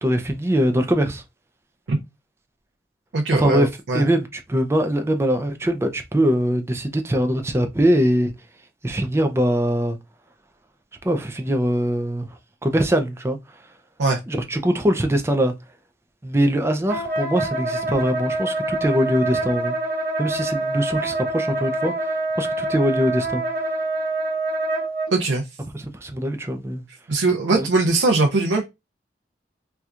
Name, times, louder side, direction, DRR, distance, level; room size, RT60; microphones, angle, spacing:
voice 1, 0.0-1.2 3.3-8.3 8.8-10.0 11.0-12.3 12.6-13.4 14.3-15.5 16.2-19.7 20.2-23.4 25.7-26.8 27.5-27.7, equal, 15° right, 0.4 m, -22 dB
voice 2, 3.1-4.0 14.0-14.2 25.1-25.4 27.1-28.6, right 3 dB, 85° right, 0.6 m, -20 dB
Wind instrument woodwind instrument, 16.9-25.1, right 2 dB, 50° right, 1.1 m, -26 dB
4.2 x 2.3 x 2.4 m
head